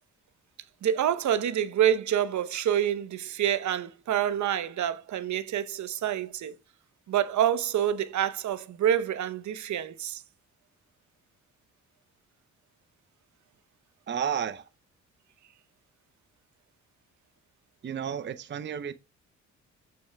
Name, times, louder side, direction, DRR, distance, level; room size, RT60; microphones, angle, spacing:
voice 1, 0.8-6.5 7.1-10.2, right 10 dB, 60° right, 0.9 m, -27 dB
voice 2, 14.1-14.6 17.8-18.9, right 8 dB, 35° right, 0.7 m, -32 dB
15.0 x 6.6 x 2.3 m
hypercardioid pair, 50°, 32 cm